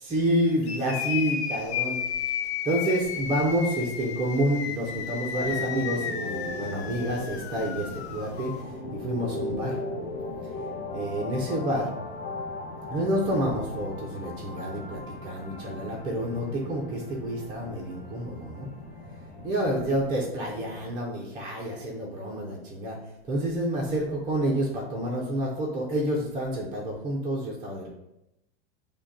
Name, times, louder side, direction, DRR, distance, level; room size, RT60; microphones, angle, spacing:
voice 1, 0.0-2.0 2.6-8.5 8.9-9.8 10.9-11.9 12.9-18.7 19.4-23.0 23.3-27.9, right 1 dB, 15° right, -5 dB, 0.5 m, -28 dB
sound 1, 0.6-8.6, left 8 dB, 80° left, 0.6 m, -33 dB
sound 2, 5.3-20.9, left 2 dB, 25° left, 0.9 m, -38 dB
6.0 x 2.2 x 4.0 m, 0.87 s
supercardioid pair, 155°, 33 cm